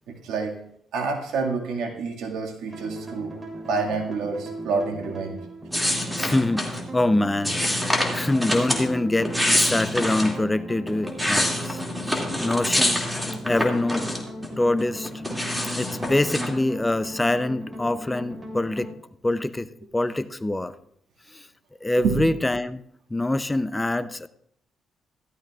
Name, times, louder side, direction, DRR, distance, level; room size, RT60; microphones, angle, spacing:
voice 1, 0.1-0.6 0.9-3.3 3.7-5.4 21.9-22.2, right 4 dB, 85° right, 1.9 m, -28 dB
sound 1, 2.7-18.9, right 1 dB, 30° right, 3.3 m, -38 dB
sound 2, 5.7-6.8 7.4-8.8 9.2-10.3 10.9-14.5 14.8-16.5, left 1 dB, ahead, 2.4 m, -25 dB
voice 2, 6.2-11.8 12.1-13.0 13.4-14.1 14.6-15.1 15.8-18.9 19.2-19.7 19.9-20.7 21.3-21.5 21.8-22.8 23.1-24.3, left 2 dB, 15° left, 0.5 m, -25 dB
14.5 x 13.0 x 2.4 m
cardioid pair, 90°, 0 cm